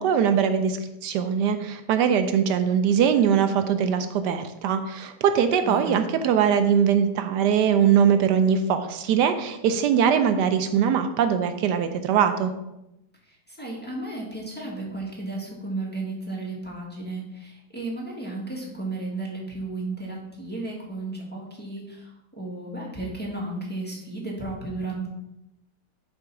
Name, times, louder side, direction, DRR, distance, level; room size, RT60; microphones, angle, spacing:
voice 1, 0.0-12.5, right 7 dB, 80° right, 8 dB, 1.2 m, -22 dB
voice 2, 5.5-6.0 13.2-25.1, right 2 dB, 5° left, -4 dB, 1.5 m, -34 dB
7.2 x 3.8 x 5.8 m, 0.89 s
omnidirectional pair, 1.8 m